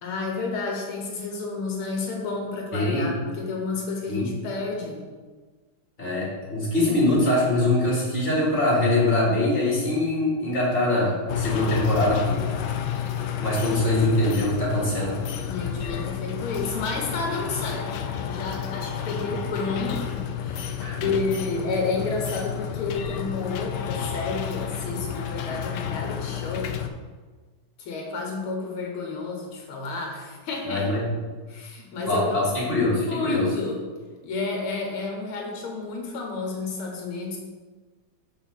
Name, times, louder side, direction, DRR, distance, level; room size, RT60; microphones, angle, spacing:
voice 1, 0.0-5.1 15.4-26.8 27.8-30.9 31.5-32.5 33.1-33.8 34.2-37.4, left 3 dB, 90° left, 0 dB, 2.1 m, -31 dB
voice 2, 2.7-3.1 4.1-4.3 6.0-12.4 13.4-15.1 19.0-19.3 20.8-21.1 30.7-31.0 32.0-33.5, left 1 dB, 25° left, -5 dB, 2.6 m, -23 dB
sound 1, 11.3-26.9, left 9 dB, 70° left, 1.0 m, -31 dB
5.7 x 5.0 x 6.5 m, 1.4 s
omnidirectional pair, 2.3 m